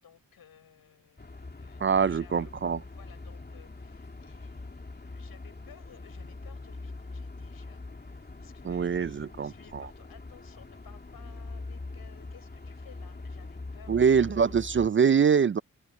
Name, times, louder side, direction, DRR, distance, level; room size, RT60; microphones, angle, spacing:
voice 1, 0.0-14.6, left 8 dB, 85° left, 4.4 m, -57 dB
sound 1, 1.2-14.9, left 3 dB, 30° left, 2.7 m, -43 dB
voice 2, 1.8-2.8 8.6-9.8 13.9-15.6, right 6 dB, 35° right, 0.4 m, -24 dB
open air
cardioid pair, 65°, 35 cm